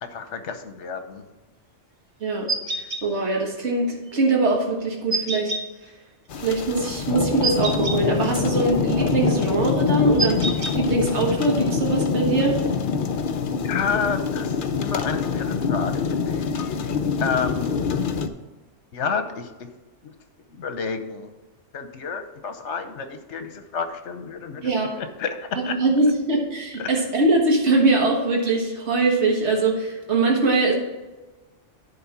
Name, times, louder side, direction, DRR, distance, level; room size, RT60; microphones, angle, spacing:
voice 1, 0.0-1.2 13.6-16.5 17.2-17.8 18.9-19.7 20.0-20.1 20.5-21.3 21.7-24.7 25.0-25.7 26.8-26.9, left 5 dB, 75° left, 8 dB, 1.2 m, -30 dB
voice 2, 2.2-5.5 6.4-10.4 10.7-12.6 24.6-24.9 25.8-30.7, right 3 dB, 70° right, -1 dB, 1.8 m, -22 dB
sound 1, 2.5-3.0 5.1-5.6 7.4-8.0 10.2-10.7, right 3 dB, 35° right, 0.9 m, -26 dB
sound 2, 6.3-18.3, left 5 dB, 55° left, 0.7 m, -25 dB
10.5 x 3.7 x 5.9 m, 1.2 s
omnidirectional pair, 1.2 m